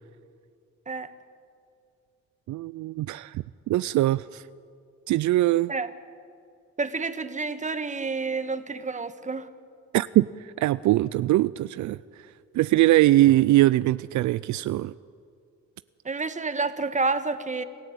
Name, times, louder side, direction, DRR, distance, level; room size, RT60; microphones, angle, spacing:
voice 1, 2.5-4.4 5.1-5.7 9.9-12.0 12.5-14.9, right 16 dB, 70° right, 17 dB, 0.5 m, -22 dB
voice 2, 6.8-9.5 16.0-17.6, right 4 dB, 25° right, 11 dB, 1.4 m, -29 dB
28.0 x 14.0 x 8.5 m, 2.4 s
cardioid pair, 90°, 30 cm